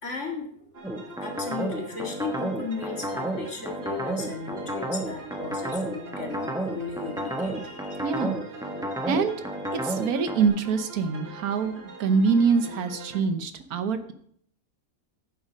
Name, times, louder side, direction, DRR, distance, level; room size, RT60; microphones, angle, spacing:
voice 1, 0.0-0.8 1.2-8.2, left 4 dB, 55° left, 1 dB, 2.1 m, -36 dB
sound 1, 0.7-13.2, right 3 dB, 45° right, 2.0 m, -43 dB
sound 2, 0.8-10.5, right 1 dB, 5° right, 0.9 m, -31 dB
voice 2, 8.0-8.4 9.0-9.3 9.7-14.1, right 5 dB, 90° right, 10 dB, 1.4 m, -25 dB
9.4 x 7.4 x 5.2 m, 0.65 s
omnidirectional pair, 1.5 m